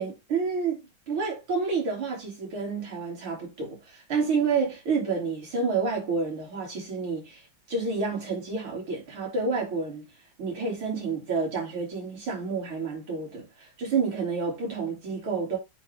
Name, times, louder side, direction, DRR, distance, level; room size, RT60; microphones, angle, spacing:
voice 1, 0.0-7.4 7.7-10.1 10.4-15.6, right 4 dB, 90° right, 3.8 m, -29 dB
8.9 x 3.5 x 3.4 m
omnidirectional pair, 2.3 m